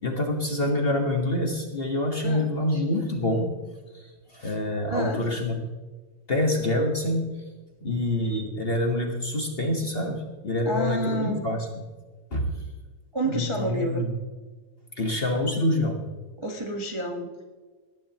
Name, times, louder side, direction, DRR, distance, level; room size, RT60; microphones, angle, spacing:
voice 1, 0.0-3.5 3.9-5.6 6.3-7.3 7.8-11.7 12.3-12.5 13.2-14.1 14.9-16.0, left 1 dB, 30° left, 2 dB, 1.2 m, -26 dB
voice 2, 4.9-5.2 8.2-8.4 10.6-11.4 13.1-14.0 16.4-17.4, right 1 dB, 20° right, 1 dB, 0.8 m, -30 dB
19.5 x 10.0 x 2.9 m, 1.3 s
omnidirectional pair, 2.4 m